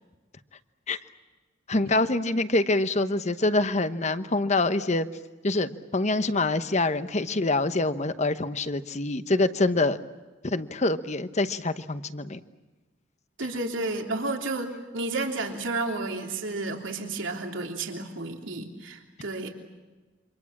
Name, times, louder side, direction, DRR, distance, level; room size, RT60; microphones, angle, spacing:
voice 1, 1.7-5.1 5.4-10.0 10.4-12.4, left 2 dB, 35° left, 11 dB, 1.1 m, -25 dB
voice 2, 13.4-19.5, right 2 dB, 85° right, 2 dB, 3.3 m, -31 dB
28.0 x 25.0 x 7.4 m, 1.2 s
head